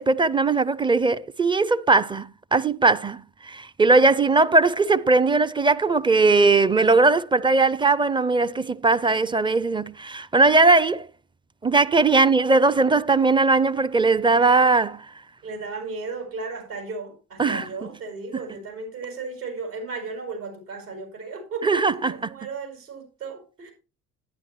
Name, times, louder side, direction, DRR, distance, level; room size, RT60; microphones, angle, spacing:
voice 1, 0.0-11.1 11.6-15.1 17.4-17.7 21.6-22.1, right 3 dB, 10° right, 0.4 m, -19 dB
voice 2, 15.4-23.7, right 4 dB, 80° right, 5.8 m, -35 dB
11.5 x 10.0 x 3.1 m
hypercardioid pair, 55°, 43 cm